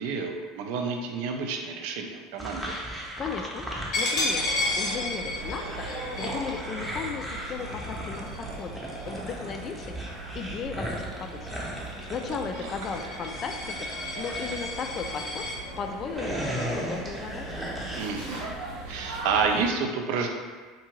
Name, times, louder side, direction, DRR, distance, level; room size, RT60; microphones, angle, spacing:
voice 1, 0.0-2.7 12.5-12.7 18.0-18.5 18.9-20.3, right 5 dB, 65° right, 3 dB, 0.3 m, -29 dB
sound 1, 2.4-4.6 4.8-15.5 15.9-18.0, equal, 5° right, 0.7 m, -37 dB
voice 2, 3.2-3.7 4.0-4.4 4.8-9.9 10.3-11.5 11.8-15.4 15.8-17.5, left 5 dB, 40° left, 5 dB, 0.3 m, -36 dB
Coin (dropping), 3.9-9.3 9.8-10.1 10.4-15.6, left 2 dB, 60° left, 0.7 m, -33 dB
sound 2, 4.3-19.7, right 2 dB, 85° right, 0.8 m, -40 dB
2.6 x 2.6 x 2.9 m, 1.5 s
hypercardioid pair, 75°, 0 cm